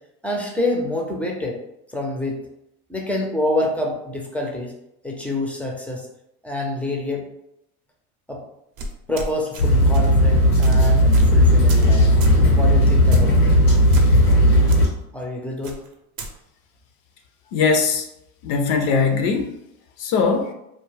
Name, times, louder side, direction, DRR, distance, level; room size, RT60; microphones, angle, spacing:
voice 1, 0.2-1.6 1.9-2.4 2.9-4.7 5.0-6.1 6.4-7.3 8.3-8.4 9.1-12.1 12.6-13.5 15.1-15.8, left 1 dB, 5° left, 0 dB, 0.4 m, -27 dB
sound 1, 8.8-9.6 9.9-10.1 10.6-10.8 11.1-11.4 11.7-11.9 12.2-12.4 13.1-13.4 13.9-14.4 14.7-14.8 15.6-16.3, right 2 dB, 45° right, 0.6 m, -34 dB
sound 2, 9.6-14.9, equal, 90° left, 1.0 m, -15 dB
voice 2, 17.5-18.1 18.4-19.6 20.0-20.5, left 5 dB, 55° left, 5 dB, 0.5 m, -20 dB
2.3 x 2.2 x 3.1 m, 0.80 s
hypercardioid pair, 80°, 44 cm